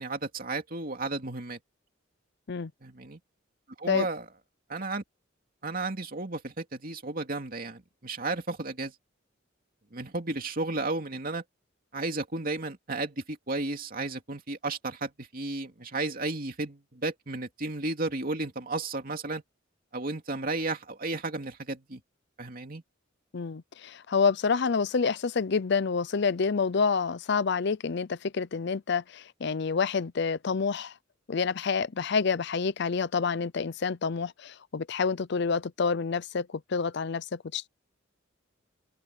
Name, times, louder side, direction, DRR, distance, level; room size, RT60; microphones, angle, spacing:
voice 1, 0.0-1.6 2.8-3.2 3.8-4.2 4.7-5.0 5.6-8.9 9.9-11.4 11.9-19.4 19.9-22.0 22.4-22.8, right 2 dB, 45° right, 2.7 m, -33 dB
voice 2, 23.3-30.9 31.3-37.7, left 5 dB, 60° left, 0.5 m, -28 dB
open air
head